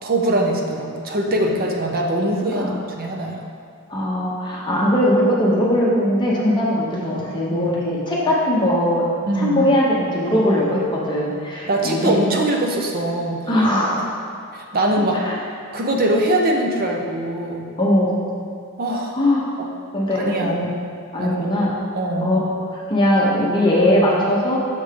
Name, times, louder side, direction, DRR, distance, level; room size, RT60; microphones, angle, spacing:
voice 1, 0.0-3.5 9.3-9.6 11.7-13.4 14.5-15.2 15.7-17.7 18.8-19.2 19.6-19.7 20.1-20.6 21.2-21.4 21.9-22.3, right 1 dB, 40° right, 1 dB, 0.7 m, -22 dB
voice 2, 3.9-9.0 9.3-12.3 13.5-14.1 15.2-15.4 17.8-18.2 19.1-19.5 19.9-20.7 21.1-21.7 22.2-24.6, left 1 dB, 20° left, -5 dB, 0.8 m, -20 dB
6.6 x 3.5 x 5.0 m, 2.4 s
head